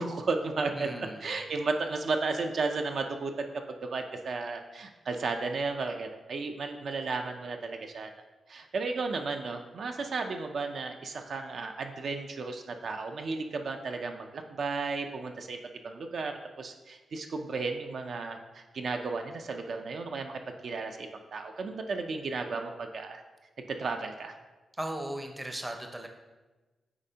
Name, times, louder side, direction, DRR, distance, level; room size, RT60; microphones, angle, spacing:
voice 1, 0.0-0.9 1.2-3.5 3.8-8.1 8.5-15.6 15.8-23.2 23.7-24.4, right 3 dB, 55° right, 4 dB, 0.4 m, -34 dB
voice 2, 0.7-1.2 24.8-26.1, right 1 dB, 10° right, 4 dB, 0.6 m, -37 dB
8.7 x 4.1 x 2.8 m, 1.2 s
wide cardioid pair, 145°, 0 cm